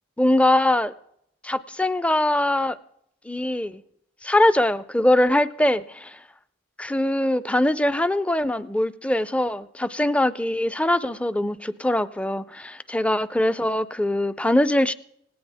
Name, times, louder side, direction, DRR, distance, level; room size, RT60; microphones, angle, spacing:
voice 1, 0.2-0.9 1.4-2.8 3.3-3.8 4.2-6.2 6.8-14.9, left 1 dB, 5° left, 0.4 m, -22 dB
18.5 x 17.5 x 3.5 m
head